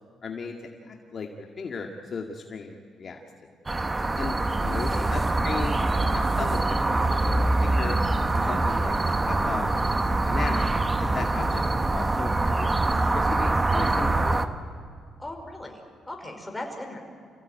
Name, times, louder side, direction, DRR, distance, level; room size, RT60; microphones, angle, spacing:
voice 1, 0.2-3.2 4.2-8.0 8.3-10.7 11.0-11.6 11.9-14.5, left 4 dB, 45° left, 2 dB, 2.1 m, -36 dB
sound 1, 3.7-14.5, right 2 dB, 20° right, 1.4 m, -24 dB
voice 2, 4.9-5.3 15.2-17.0, left 1 dB, 10° left, 3 dB, 5.4 m, -38 dB
28.0 x 16.5 x 9.4 m, 2.2 s
cardioid pair, 90°, 0 cm